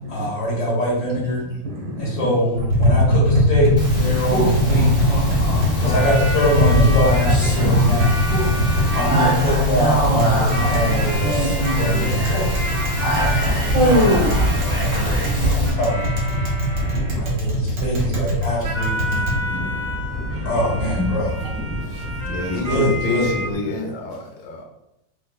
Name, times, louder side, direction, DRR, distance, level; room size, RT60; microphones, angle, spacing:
voice 1, 0.1-1.4 2.0-4.9 5.8-8.2 8.9-12.7 14.6-16.4 17.1-19.3 20.5-21.3 22.7-23.3, equal, 55° left, -6 dB, 1.8 m, -23 dB
voice 2, 1.6-2.3 2.8-3.0 3.7-4.2 4.9-6.0 7.6-7.8 8.4-9.2 10.8-11.0 11.6-12.1 12.5-12.7 12.9-14.7 15.6-15.7 16.3-16.5 16.7-17.4 18.0-18.2 19.1-20.1 20.8-21.2 21.7-22.1 22.4-22.7, equal, 80° right, -2 dB, 1.7 m, -27 dB
Tap, 2.5-19.4, equal, 55° right, 1.4 m, -22 dB
Speech, 3.8-15.7, equal, 25° left, 1.0 m, -23 dB
sound 1, 4.8-23.5, equal, 20° right, 0.5 m, -29 dB
voice 3, 8.5-9.7 21.8-24.6, left 3 dB, 80° left, 3 dB, 1.3 m, -30 dB
5.0 x 2.2 x 2.2 m, 0.86 s
omnidirectional pair, 2.0 m